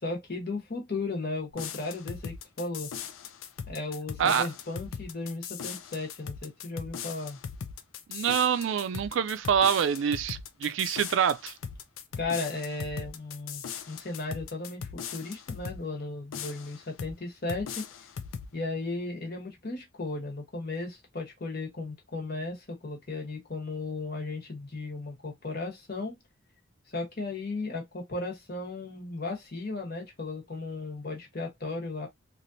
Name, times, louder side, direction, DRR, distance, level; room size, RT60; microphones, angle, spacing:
voice 1, 0.0-2.9 3.7-7.4 12.2-17.8 18.5-26.2 26.9-32.1, left 3 dB, 50° left, 1.1 m, -35 dB
sound 1, 1.5-15.8 16.3-17.2 17.5-18.5, left 7 dB, 80° left, 0.5 m, -39 dB
voice 2, 8.1-11.5, right 8 dB, 65° right, 0.3 m, -26 dB
3.1 x 2.5 x 2.6 m
head